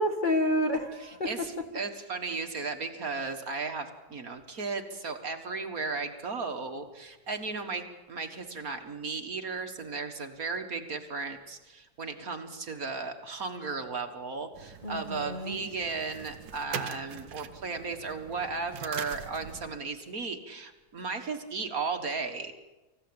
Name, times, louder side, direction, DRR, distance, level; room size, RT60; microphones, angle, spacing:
voice 1, 0.0-1.3 14.8-15.6, left 1 dB, 25° left, 4 dB, 1.8 m, -29 dB
voice 2, 1.0-22.5, right 4 dB, 50° right, 5 dB, 1.9 m, -35 dB
sound 1, 14.5-19.8, right 9 dB, 85° right, 1.7 m, -43 dB
26.0 x 15.5 x 8.8 m, 1.1 s
omnidirectional pair, 1.9 m